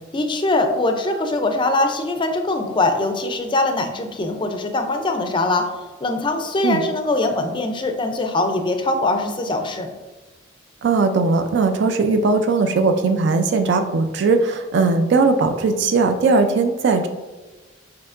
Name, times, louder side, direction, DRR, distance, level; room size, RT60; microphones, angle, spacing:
voice 1, 0.1-5.7 6.0-9.9, left 2 dB, 25° left, 5 dB, 0.4 m, -22 dB
voice 2, 10.8-17.1, right 4 dB, 60° right, 6 dB, 0.4 m, -18 dB
6.5 x 2.8 x 2.5 m, 1.2 s
head